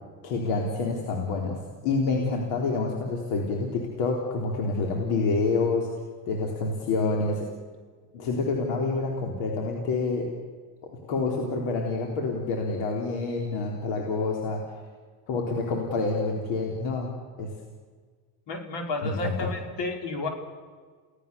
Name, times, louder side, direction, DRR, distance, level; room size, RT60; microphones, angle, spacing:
voice 1, 0.2-1.6 1.8-5.9 6.3-7.5 8.1-10.3 10.8-14.6 15.3-17.5 19.0-19.5, left 3 dB, 75° left, 0 dB, 4.0 m, -27 dB
voice 2, 18.5-20.3, left 2 dB, 55° left, 3 dB, 5.2 m, -31 dB
30.0 x 18.0 x 7.1 m, 1.6 s
supercardioid pair, 80°, 49 cm